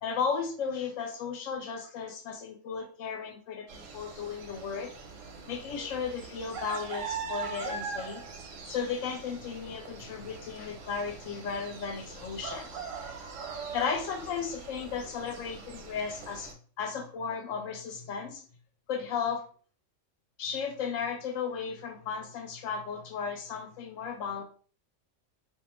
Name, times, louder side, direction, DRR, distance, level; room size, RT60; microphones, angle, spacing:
voice 1, 0.0-4.9 5.5-8.2 8.6-12.7 13.7-18.4 18.9-19.4 20.4-24.4, left 6 dB, 85° left, 4 dB, 1.0 m, -35 dB
sound 1, 3.7-16.5, right 5 dB, 90° right, 1.0 m, -42 dB
2.3 x 2.3 x 3.0 m, 0.43 s
omnidirectional pair, 1.3 m